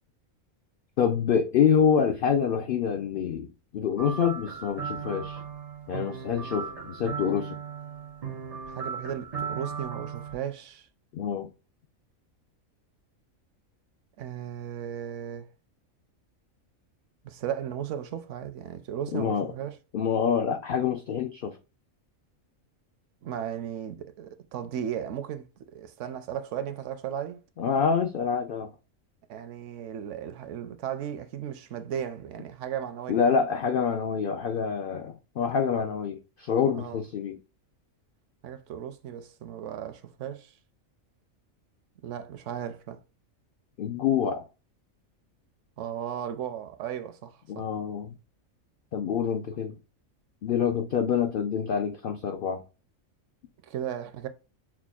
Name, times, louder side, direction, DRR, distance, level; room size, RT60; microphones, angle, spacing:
voice 1, 1.0-3.5 3.7-5.4 5.9-7.6 11.1-11.5 19.1-19.5 19.9-21.6 27.6-28.7 33.1-37.4 43.8-44.5 47.5-48.1 48.9-49.7 50.4-52.6, left 7 dB, 65° left, 0.5 m, -26 dB
sound 1, 4.0-10.3, right 6 dB, 45° right, 0.5 m, -37 dB
voice 2, 8.7-10.9 14.2-15.5 17.2-19.8 23.2-25.5 25.7-27.4 29.3-33.2 36.7-37.0 38.4-40.5 42.0-43.0 45.8-47.7 53.6-54.3, right 9 dB, 70° right, 0.9 m, -36 dB
5.9 x 2.2 x 2.3 m
omnidirectional pair, 1.4 m